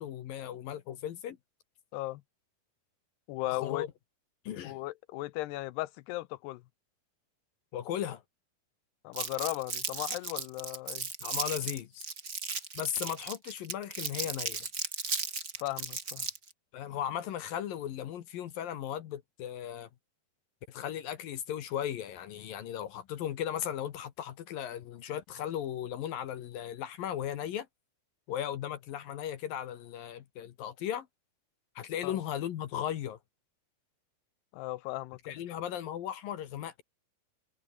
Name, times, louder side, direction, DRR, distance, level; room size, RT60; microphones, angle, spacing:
voice 1, 0.0-1.4 3.5-3.9 4.4-4.8 7.7-8.2 11.2-12.1 12.7-14.7 16.7-19.9 20.7-27.7 28.3-31.1 31.8-33.2 35.3-36.8, left 10 dB, 65° left, 2.9 m, -36 dB
voice 2, 3.3-3.8 4.6-6.6 9.0-11.1 15.6-16.3 32.0-32.2 34.5-35.6, left 18 dB, 90° left, 2.8 m, -37 dB
Crumpling crinkling, 9.1-16.5, right 4 dB, 25° right, 2.5 m, -36 dB
omnidirectional pair, 4.7 m